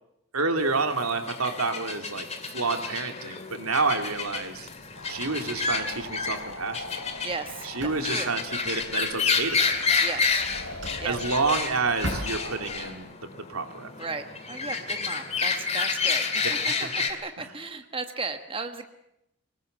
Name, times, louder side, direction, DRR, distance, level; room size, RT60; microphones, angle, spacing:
voice 1, 0.3-4.7 5.0-6.9 7.6-9.9 11.0-13.9 16.4-16.9 17.4-17.5, right 3 dB, 90° right, 6 dB, 2.9 m, -29 dB
sound 1, 0.6-17.1, left 5 dB, 30° left, 2.4 m, -30 dB
Drawer open or close, 4.0-13.0, equal, 55° right, 7.2 m, -42 dB
sound 2, 5.0-8.9 10.3-11.5 12.0-12.9, left 2 dB, 65° left, 3.2 m, -42 dB
voice 2, 7.2-7.7 8.1-8.3 10.0-10.4 11.0-11.2 14.0-18.9, right 4 dB, 25° right, 7 dB, 1.4 m, -35 dB
24.5 x 19.5 x 8.2 m, 0.81 s
head